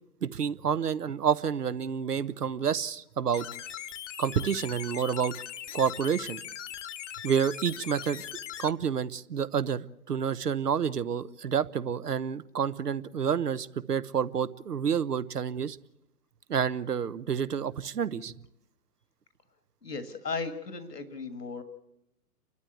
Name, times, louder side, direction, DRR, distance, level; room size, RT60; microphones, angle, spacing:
voice 1, 0.2-3.5 4.2-5.3 5.7-6.4 7.2-8.2 8.6-15.8 16.5-18.3, right 7 dB, 75° right, 15 dB, 0.9 m, -29 dB
sound 1, 3.3-8.7, left 10 dB, 50° left, 1.0 m, -40 dB
voice 2, 19.8-21.6, left 4 dB, 85° left, 10 dB, 1.9 m, -36 dB
29.5 x 12.5 x 8.2 m, 0.83 s
figure-of-eight pair, 120°, 47 cm